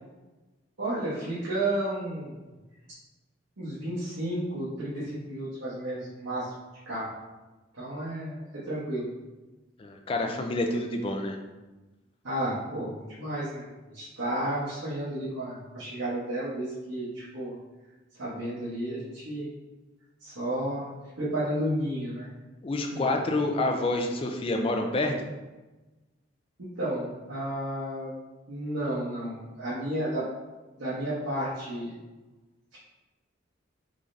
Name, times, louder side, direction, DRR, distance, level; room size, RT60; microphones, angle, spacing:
voice 1, 0.8-2.4 3.6-6.5 6.9-7.1 7.7-9.1 12.2-17.5 18.2-19.5 20.2-20.9 21.2-22.3 22.9-23.1 26.6-28.2 28.5-30.3 30.8-31.9 32.7-32.8, right 1 dB, 80° right, -9 dB, 0.9 m, -32 dB
voice 2, 9.8-11.4 22.6-25.1, left 2 dB, 30° left, 4 dB, 0.3 m, -28 dB
3.6 x 3.2 x 2.6 m, 1.1 s
head